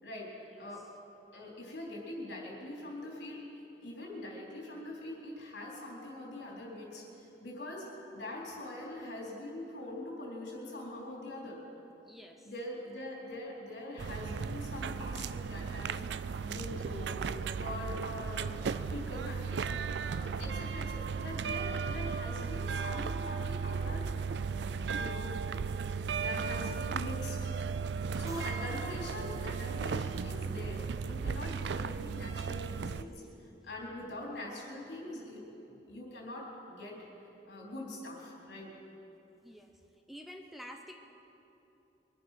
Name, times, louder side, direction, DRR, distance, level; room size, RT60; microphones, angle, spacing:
voice 1, 1.3-3.4 3.8-7.9 8.1-11.6 12.4-16.0 16.4-17.3 17.6-19.7 20.0-24.0 24.5-25.4 26.1-27.5 28.2-33.2 33.6-37.0 37.5-38.7, left 1 dB, 70° left, -2 dB, 3.9 m, -43 dB
voice 2, 12.0-12.5 34.1-34.3 39.4-39.7 40.1-41.0, equal, ahead, 2 dB, 0.8 m, -49 dB
sound 1, 14.0-33.0, right 5 dB, 70° right, 0.4 m, -35 dB
sound 2, 28.1-30.4, right 2 dB, 20° right, 1.2 m, -53 dB
23.0 x 10.0 x 5.9 m, 3.0 s
head